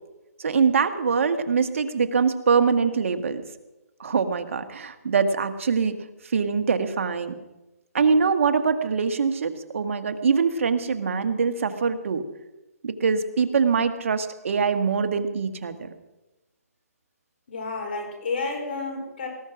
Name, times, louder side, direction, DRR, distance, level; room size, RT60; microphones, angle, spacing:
voice 1, 0.4-3.4 4.0-5.9 6.3-7.3 7.9-12.2 12.8-15.9, right 5 dB, 55° right, 9 dB, 1.5 m, -23 dB
voice 2, 17.5-19.3, left 3 dB, 45° left, 2 dB, 4.8 m, -30 dB
19.5 x 12.0 x 6.0 m, 1.0 s
hypercardioid pair, 160°, 9 cm